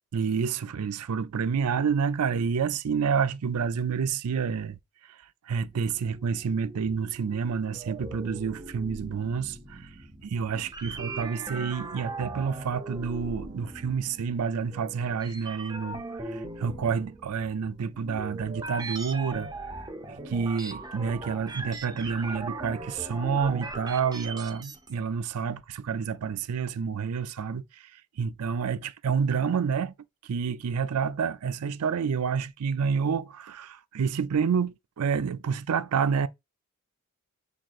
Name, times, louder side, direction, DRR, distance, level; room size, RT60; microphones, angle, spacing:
voice 1, 0.1-4.8 5.5-9.9 10.2-16.0 16.3-19.5 20.1-27.8 28.2-29.9 30.2-36.3, right 6 dB, 80° right, 0.4 m, -29 dB
sound 1, 5.9-24.9, right 2 dB, 20° right, 0.6 m, -40 dB
7.4 x 2.8 x 2.4 m
head